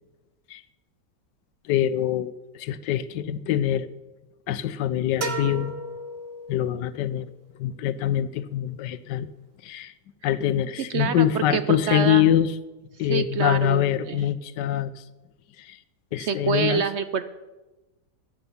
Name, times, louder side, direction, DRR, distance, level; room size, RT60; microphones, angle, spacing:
voice 1, 1.7-3.9 4.5-5.8 6.5-7.3 7.6-9.3 9.6-9.9 10.2-12.5 13.0-15.0 15.6-15.8 16.1-16.8, left 11 dB, 85° left, 15 dB, 1.3 m, -24 dB
sound 1, 5.2-7.0, right 3 dB, 40° right, 1.1 m, -33 dB
voice 2, 10.9-12.2 13.1-14.2 16.2-17.2, right 7 dB, 70° right, 12 dB, 0.6 m, -26 dB
14.0 x 10.0 x 6.9 m, 1.1 s
omnidirectional pair, 1.8 m